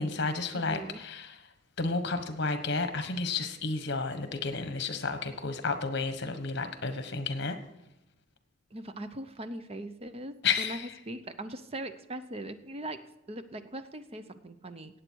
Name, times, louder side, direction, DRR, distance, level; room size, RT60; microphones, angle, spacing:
voice 1, 0.0-1.4 1.8-7.6 10.4-10.9, left 4 dB, 60° left, 8 dB, 1.3 m, -31 dB
voice 2, 0.5-1.0 8.7-10.8 11.1-13.0 13.3-15.0, right 1 dB, 30° right, 10 dB, 0.7 m, -40 dB
18.0 x 8.1 x 4.6 m, 0.92 s
head